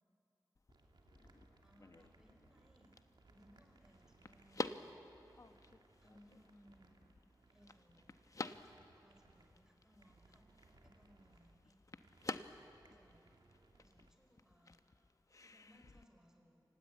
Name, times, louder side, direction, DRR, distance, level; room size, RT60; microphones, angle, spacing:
sound 1, 0.6-16.0, left 3 dB, 45° left, 0.9 m, -51 dB
sound 2, 0.7-14.1, right 3 dB, 70° right, 2.1 m, -68 dB
voice 1, 1.6-3.0 3.2-4.8 6.0-7.0 7.5-8.1 8.5-11.8 12.8-13.4 13.8-14.9 15.4-16.6, equal, 5° right, 2 dB, 4.7 m, -67 dB
27.5 x 16.5 x 9.2 m, 2.9 s
wide cardioid pair, 70°, 8 cm